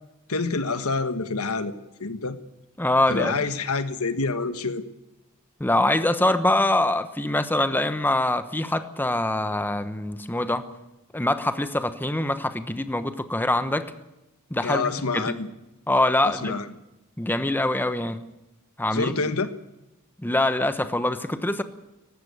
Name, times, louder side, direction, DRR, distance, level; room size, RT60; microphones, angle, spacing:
voice 1, 0.3-1.7 2.0-2.4 3.1-4.8 14.6-15.5 16.2-16.7 18.9-19.5, left 3 dB, 75° left, 10 dB, 1.4 m, -27 dB
voice 2, 2.8-3.4 5.6-10.7 11.1-13.9 14.5-15.4 15.9-16.6 17.2-18.2 18.8-19.1 20.2-21.6, left 1 dB, 10° left, 10 dB, 1.0 m, -24 dB
19.0 x 15.5 x 9.5 m, 0.96 s
head